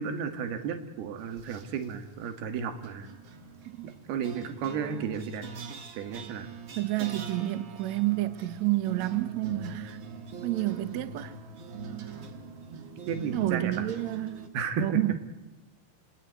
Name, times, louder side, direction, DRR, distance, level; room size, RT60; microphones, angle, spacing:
voice 1, 0.0-3.1 3.8-5.5 5.9-6.5 12.7-13.9 14.5-15.0, right 6 dB, 90° right, 3.7 m, -33 dB
sound 1, 1.3-1.9 2.8-14.5, right 5 dB, 50° right, 1.5 m, -42 dB
voice 2, 6.8-10.0 10.4-11.3 13.3-15.1, right 16 dB, 65° right, 1.9 m, -29 dB
27.5 x 18.0 x 9.3 m
omnidirectional pair, 4.4 m